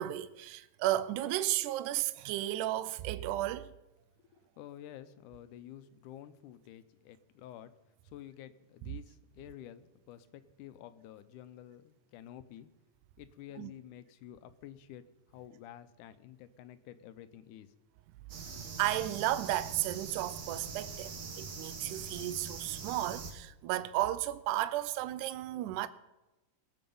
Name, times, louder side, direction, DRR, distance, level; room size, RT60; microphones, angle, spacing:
voice 1, 0.0-3.7 13.6-13.7 18.8-25.9, right 14 dB, 80° right, 2.0 m, -33 dB
voice 2, 4.3-7.7 8.0-12.7 13.2-17.8, left 11 dB, 80° left, 2.1 m, -50 dB
sound 1, 18.3-23.3, right 5 dB, 55° right, 1.9 m, -43 dB
21.0 x 7.7 x 5.4 m
omnidirectional pair, 3.8 m